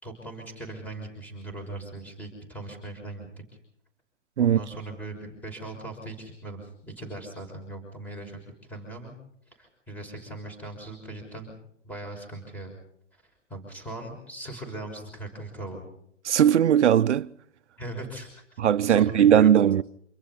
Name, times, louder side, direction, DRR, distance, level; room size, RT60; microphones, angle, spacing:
voice 1, 0.0-3.4 4.4-9.1 9.6-11.5 11.8-12.7 13.1-15.8 17.8-18.4 18.9-19.5, right 2 dB, 5° left, 6.1 m, -39 dB
voice 2, 16.2-17.3 18.6-19.8, right 9 dB, 70° right, 0.9 m, -19 dB
28.0 x 26.5 x 4.2 m
hypercardioid pair, 140°, 36 cm